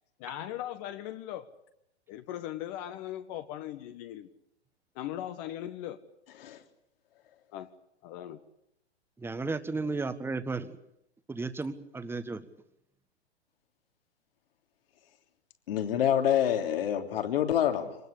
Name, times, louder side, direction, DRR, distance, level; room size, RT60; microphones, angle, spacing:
voice 1, 0.2-1.5 2.1-4.3 4.9-6.0 7.5-7.7 8.0-8.4 9.8-9.9, left 12 dB, 40° left, 1.5 m, -39 dB
voice 2, 9.2-10.8 11.3-12.5, right 3 dB, 5° right, 1.5 m, -34 dB
voice 3, 15.7-18.0, left 10 dB, 60° left, 3.3 m, -27 dB
25.0 x 19.5 x 8.6 m
hypercardioid pair, 115°, 33 cm